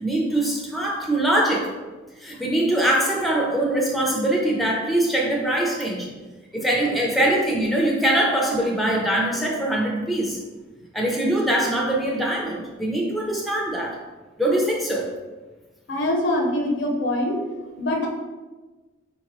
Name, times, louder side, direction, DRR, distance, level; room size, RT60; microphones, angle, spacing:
voice 1, 0.0-1.7 2.2-6.1 6.5-10.4 10.9-14.0 14.4-15.1, right 1 dB, ahead, -2 dB, 0.5 m, -22 dB
voice 2, 15.9-17.4 17.8-18.1, left 1 dB, 65° left, 1 dB, 0.6 m, -23 dB
4.4 x 2.9 x 3.0 m, 1.2 s
head